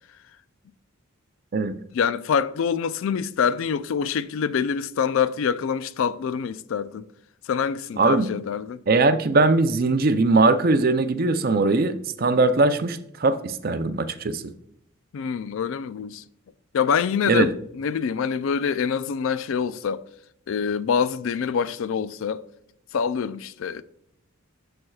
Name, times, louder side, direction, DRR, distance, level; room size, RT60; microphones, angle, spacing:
voice 1, 1.9-7.0 7.4-8.8 15.1-16.2 16.7-20.0 20.5-22.4 22.9-23.8, left 6 dB, 65° left, 0.3 m, -25 dB
voice 2, 8.0-8.3 8.9-14.4 17.3-17.5, right 3 dB, 45° right, 0.4 m, -20 dB
13.0 x 4.4 x 2.3 m
head